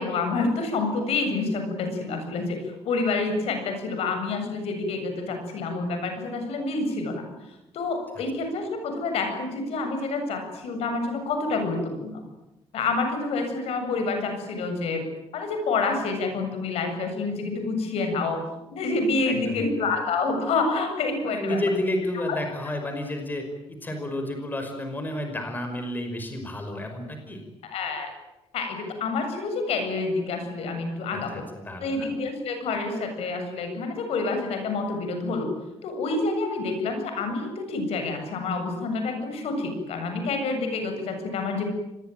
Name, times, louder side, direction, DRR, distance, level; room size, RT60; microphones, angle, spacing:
voice 1, 0.0-2.6 2.8-7.2 7.7-12.2 12.7-15.0 15.3-18.4 18.7-21.6 27.6-28.1 28.5-31.4 31.8-35.5 35.8-41.7, left 3 dB, 80° left, 6 dB, 7.5 m, -28 dB
voice 2, 19.3-19.7 21.3-23.4 23.7-27.4 31.1-32.1, left 1 dB, 20° left, 5 dB, 5.4 m, -31 dB
26.5 x 21.5 x 9.3 m, 0.95 s
cardioid pair, 150°, 10 cm